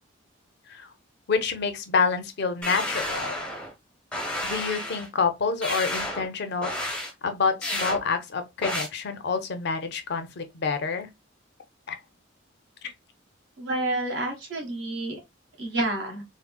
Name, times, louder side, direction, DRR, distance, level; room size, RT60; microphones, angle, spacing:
voice 1, 1.3-3.3 4.4-11.1 11.9-12.0 12.8-12.9, left 5 dB, 50° left, 0.5 m, -28 dB
sound 1, 2.6-3.7 4.1-5.1 5.6-6.3 6.6-7.1 7.6-8.0 8.6-8.9, left 1 dB, 5° left, 0.6 m, -31 dB
voice 2, 13.6-15.1 15.6-16.2, right 2 dB, 60° right, 1.3 m, -29 dB
3.6 x 2.0 x 2.2 m
head